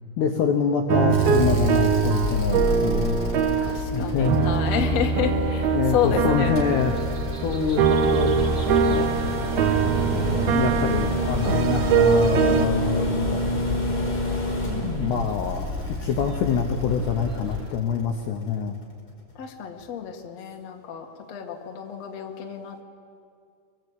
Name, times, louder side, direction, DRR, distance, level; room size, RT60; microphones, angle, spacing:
voice 1, 0.2-3.2 3.9-4.5 5.7-7.0 7.4-9.2 10.1-13.4 15.0-15.7 16.0-18.8, left 6 dB, 70° left, 3 dB, 2.7 m, -26 dB
sound 1, 0.9-3.9 4.2-12.7, right 7 dB, 75° right, 2.4 m, -23 dB
sound 2, 1.1-5.3 6.6-17.7 19.3-19.4, left 2 dB, 30° left, 4.5 m, -29 dB
sound 3, 1.4-17.7, left 3 dB, 25° right, 2.3 m, -33 dB
voice 2, 3.6-6.6 14.8-15.4 19.4-22.8, left 7 dB, 50° left, 1 dB, 2.1 m, -30 dB
24.5 x 23.0 x 8.3 m, 2.3 s
omnidirectional pair, 5.9 m